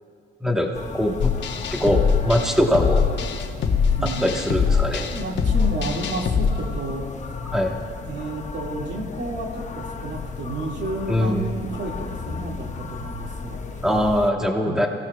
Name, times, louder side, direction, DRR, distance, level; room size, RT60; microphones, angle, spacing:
voice 1, 0.4-1.3 1.7-3.0 4.0-5.1 7.5-7.8 11.1-11.5 13.8-14.9, equal, 5° right, 1 dB, 1.3 m, -22 dB
sound 1, 0.7-14.3, left 5 dB, 35° left, 0.9 m, -35 dB
sound 2, 1.2-6.5, left 6 dB, 65° left, 1.2 m, -22 dB
voice 2, 4.0-4.3 5.1-7.0 8.0-13.8 14.6-14.9, right 2 dB, 65° right, -1 dB, 2.2 m, -31 dB
27.5 x 16.5 x 2.4 m, 2.4 s
cardioid pair, 90°, 20 cm